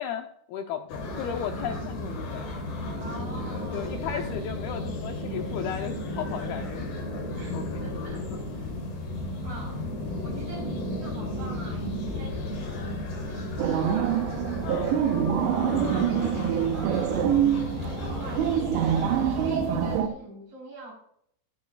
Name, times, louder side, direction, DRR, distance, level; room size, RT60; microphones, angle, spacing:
voice 1, 0.0-2.7 3.7-7.3 7.5-7.8 8.2-8.4 14.6-15.0, left 8 dB, 80° left, 4 dB, 2.3 m, -35 dB
sound 1, 0.9-20.0, left 1 dB, 60° left, 4.7 m, -33 dB
voice 2, 2.9-4.1 7.3-8.7 9.4-9.8 10.2-14.2 15.9-18.8 19.1-20.9, right 1 dB, 50° right, -1 dB, 5.4 m, -45 dB
sound 2, 13.6-20.1, right 10 dB, 80° right, 3.2 m, -25 dB
20.0 x 8.6 x 2.4 m, 0.68 s
omnidirectional pair, 5.0 m